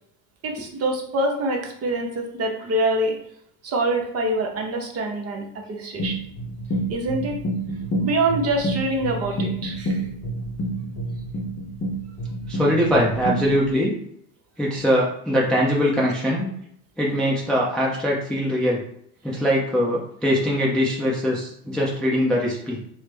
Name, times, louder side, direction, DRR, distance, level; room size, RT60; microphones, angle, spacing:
voice 1, 0.4-3.1 3.6-6.2 6.9-7.4 8.0-10.1, right 2 dB, 35° right, 2 dB, 0.7 m, -25 dB
sound 1, 6.0-13.7, right 1 dB, 35° left, 0.7 m, -28 dB
voice 2, 12.5-13.9 14.6-16.5 17.0-18.8 19.2-22.8, equal, ahead, -4 dB, 0.4 m, -22 dB
3.1 x 2.1 x 3.3 m, 0.70 s
hypercardioid pair, 85°, 44 cm